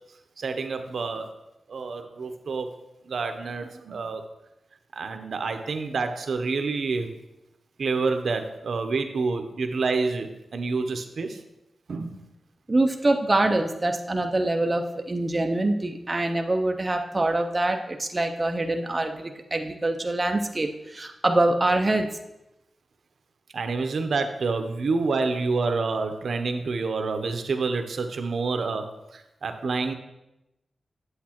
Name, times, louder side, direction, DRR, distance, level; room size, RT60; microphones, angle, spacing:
voice 1, 0.4-1.3 1.7-2.7 3.0-4.2 4.9-7.1 7.8-11.4 11.9-12.2 23.5-28.9 29.1-29.9, right 4 dB, 65° right, 6 dB, 0.7 m, -28 dB
voice 2, 12.7-22.1, right 2 dB, 20° right, 3 dB, 0.5 m, -24 dB
8.3 x 8.1 x 2.9 m, 0.92 s
wide cardioid pair, 145°, 0 cm